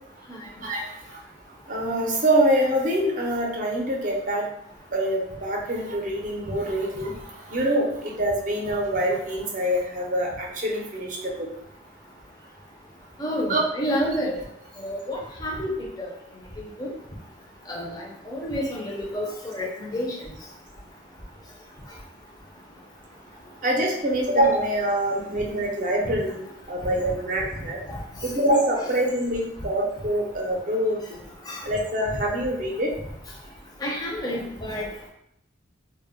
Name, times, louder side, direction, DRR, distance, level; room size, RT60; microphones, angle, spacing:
voice 1, 0.6-1.2 1.7-4.5 4.9-11.5 13.5-13.6 23.6-26.4 26.7-27.8 28.2-31.0 31.6-32.9, right 1 dB, 40° right, -1 dB, 0.5 m, -25 dB
voice 2, 13.2-14.3 14.8-15.7 16.0-16.1 16.6-16.9 17.7-20.1 27.9-28.0 31.5-31.6 33.8-34.9, equal, 20° left, -3 dB, 0.5 m, -29 dB
2.1 x 2.0 x 3.5 m, 0.76 s
head